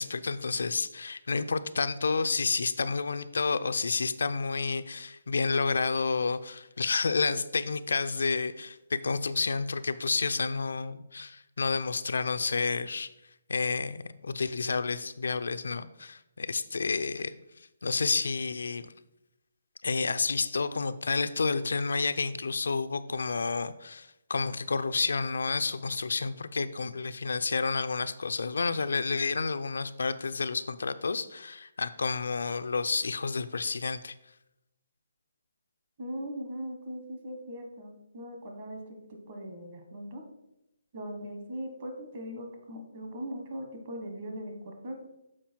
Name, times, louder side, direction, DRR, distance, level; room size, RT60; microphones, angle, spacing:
voice 1, 0.0-13.1 13.5-17.3 17.8-18.9 19.8-34.1, left 4 dB, 75° left, 11 dB, 0.4 m, -30 dB
voice 2, 36.0-39.0 39.3-40.2 40.9-45.1, equal, 30° right, 3 dB, 1.2 m, -40 dB
7.3 x 4.9 x 4.4 m, 0.87 s
hypercardioid pair, 175°, 0 cm